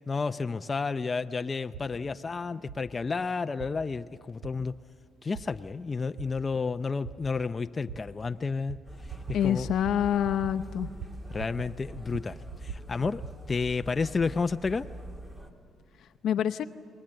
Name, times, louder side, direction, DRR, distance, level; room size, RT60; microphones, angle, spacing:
voice 1, 0.1-4.7 5.2-8.8 9.4-9.7 11.3-13.2 13.5-14.9, left 4 dB, 30° left, 9 dB, 0.5 m, -31 dB
sound 1, 1.7-1.9 2.7-2.8 3.6-3.7 4.4-4.5 5.3-5.5 6.2-6.3 7.0-7.2 7.9-8.0 8.7-8.8 9.1-9.4 9.7-10.0 10.2-10.5 10.8-11.7 11.9-13.3, right 7 dB, 90° right, 1.6 m, -41 dB
sound 2, 8.9-15.5, right 1 dB, 30° right, 2.3 m, -44 dB
voice 2, 9.3-10.9 16.0-16.6, left 9 dB, 75° left, 9 dB, 0.7 m, -27 dB
29.5 x 20.5 x 7.7 m, 2.5 s
cardioid pair, 90°, 0 cm